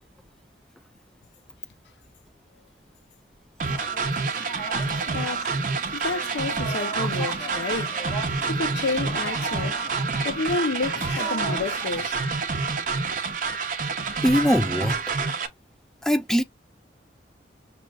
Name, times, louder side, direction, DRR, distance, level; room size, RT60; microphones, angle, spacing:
sound 1, 3.6-12.1, right 2 dB, 35° left, 2.6 m, -37 dB
sound 2, 3.6-15.5, right 4 dB, 45° right, 0.7 m, -28 dB
voice 1, 5.1-5.6 5.9-8.0 8.5-9.9 10.2-12.3, left 3 dB, 70° left, 0.6 m, -30 dB
voice 2, 14.2-15.0 16.0-16.4, equal, 5° left, 0.3 m, -21 dB
6.2 x 2.7 x 2.3 m
head